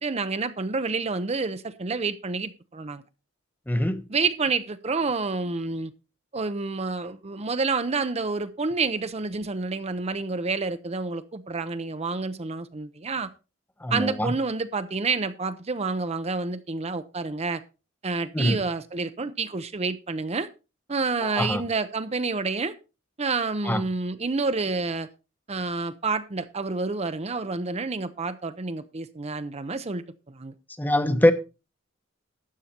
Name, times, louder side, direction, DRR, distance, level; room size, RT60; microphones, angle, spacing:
voice 1, 0.0-3.0 4.1-5.9 6.3-13.3 13.9-17.6 18.0-20.5 20.9-22.7 23.2-25.1 25.5-30.5, right 4 dB, 35° right, 0.7 m, -29 dB
voice 2, 3.7-4.0 13.8-14.3 18.3-18.6 21.2-21.6 23.6-23.8 30.8-31.3, left 1 dB, 10° left, 1.0 m, -23 dB
12.5 x 8.2 x 4.3 m
head